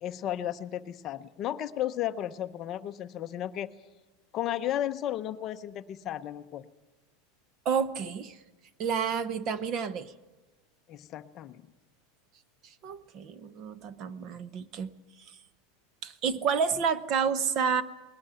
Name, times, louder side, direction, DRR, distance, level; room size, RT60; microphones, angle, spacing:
voice 1, 0.0-3.7 4.3-6.7 10.9-11.6, left 12 dB, 30° left, 10 dB, 0.7 m, -34 dB
voice 2, 7.6-8.4 8.8-10.1 12.6-14.9 16.0-17.8, right 6 dB, 30° right, 14 dB, 0.8 m, -30 dB
20.0 x 18.0 x 9.0 m, 1.1 s
supercardioid pair, 170°, 0 cm